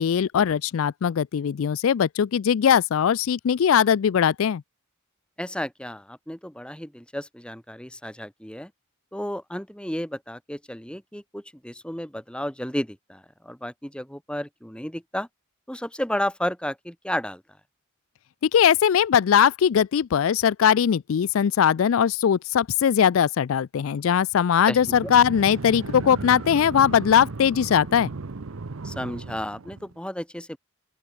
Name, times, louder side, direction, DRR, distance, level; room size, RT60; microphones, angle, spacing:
voice 1, 0.0-4.6 18.4-28.1, left 8 dB, 70° left, 0.4 m, -20 dB
voice 2, 5.4-8.7 9.1-15.3 15.7-17.4 24.7-25.1 28.8-30.6, left 1 dB, 5° left, 1.9 m, -32 dB
sound 1, 24.7-30.0, right 3 dB, 75° right, 0.8 m, -35 dB
open air
head